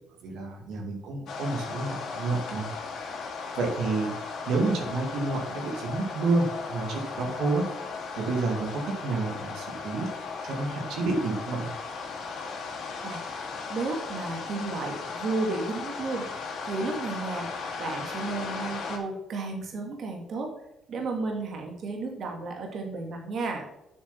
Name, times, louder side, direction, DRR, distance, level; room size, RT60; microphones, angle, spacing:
voice 1, 0.2-2.7 3.6-7.7 8.1-10.1 10.4-11.7, right 3 dB, 80° right, 2 dB, 2.2 m, -29 dB
sound 1, 1.3-19.0, left 4 dB, 70° left, 2.6 m, -36 dB
voice 2, 13.7-16.3 16.6-17.5 17.8-20.5 20.9-23.6, right 3 dB, 60° right, 2 dB, 2.1 m, -33 dB
8.2 x 6.4 x 5.8 m, 0.90 s
cardioid pair, 90°, 0 cm